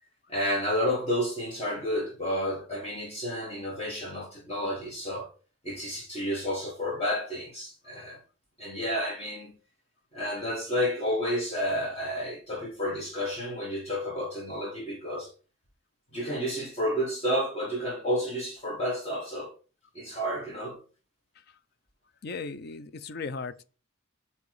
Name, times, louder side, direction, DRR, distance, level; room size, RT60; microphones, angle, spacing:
voice 1, 0.3-5.3 5.6-8.2 8.6-9.5 10.1-15.3 16.1-19.5 19.9-20.8, equal, 30° left, 1.4 m, -31 dB
voice 2, 22.2-23.8, left 4 dB, 50° left, 0.5 m, -37 dB
8.1 x 2.9 x 4.8 m
head